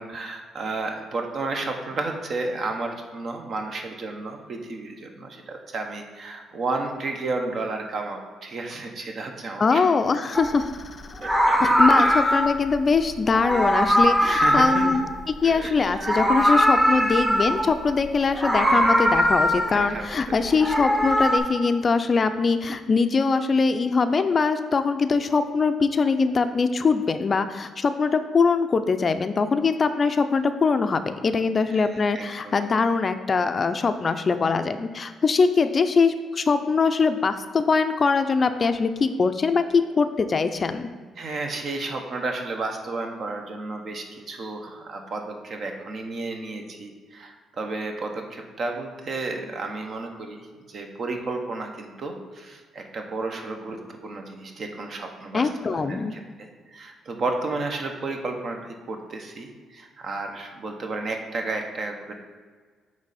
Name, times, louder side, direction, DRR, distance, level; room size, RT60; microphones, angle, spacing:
voice 1, 0.0-9.8 11.2-11.6 11.9-12.2 14.3-15.0 15.4-15.7 19.7-20.4 31.7-32.7 41.2-50.4 50.7-62.1, right 3 dB, 55° right, 3 dB, 0.9 m, -32 dB
voice 2, 9.6-11.3 11.6-40.9 55.3-56.1, left 4 dB, 40° left, 9 dB, 0.4 m, -22 dB
Meow, 10.3-10.6 11.1-12.6 13.3-15.6 15.9-17.8 18.3-19.9 20.4-21.4, equal, 10° right, 0.8 m, -21 dB
8.7 x 3.3 x 4.1 m, 1.5 s
cardioid pair, 90°, 0 cm